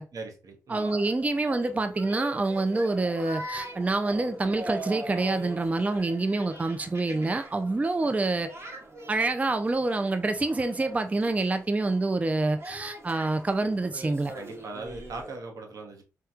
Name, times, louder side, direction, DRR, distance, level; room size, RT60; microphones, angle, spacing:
voice 1, 0.1-1.0 14.3-16.0, right 3 dB, 70° right, 0.9 m, -40 dB
voice 2, 0.7-8.5 9.1-14.3, right 2 dB, 25° right, 0.4 m, -27 dB
sound 1, 0.7-15.4, right 1 dB, 45° right, 1.0 m, -42 dB
4.3 x 2.2 x 2.4 m
cardioid pair, 65°, 6 cm